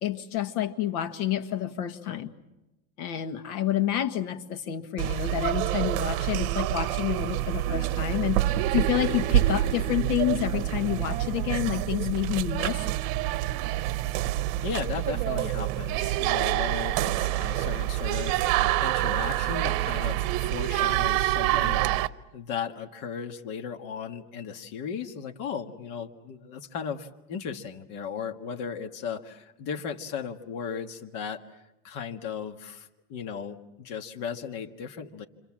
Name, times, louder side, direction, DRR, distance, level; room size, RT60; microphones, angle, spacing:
voice 1, 0.0-2.3 3.0-12.8, left 11 dB, 75° left, 9 dB, 1.8 m, -29 dB
sound 1, 5.0-22.1, right 15 dB, 60° right, 1.0 m, -27 dB
voice 2, 14.6-18.5 18.8-35.3, left 7 dB, 40° left, 5 dB, 1.7 m, -36 dB
29.0 x 25.0 x 7.5 m, 0.97 s
supercardioid pair, 150°, 46 cm